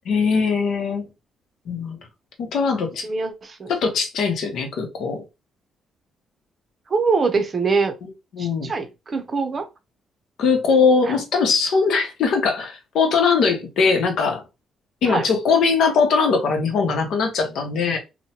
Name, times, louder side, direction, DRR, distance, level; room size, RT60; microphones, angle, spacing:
voice 1, 0.1-1.0 1.7-2.0 2.4-3.0 3.7-5.2 8.0-8.7 10.4-14.4 15.0-18.0, left 5 dB, 75° left, 0.8 m, -21 dB
voice 2, 3.0-3.7 6.9-7.9 8.4-9.7 11.1-11.2 15.1-15.3, right 4 dB, 40° right, 0.6 m, -23 dB
3.0 x 2.1 x 2.8 m
cardioid pair, 90°, 0 cm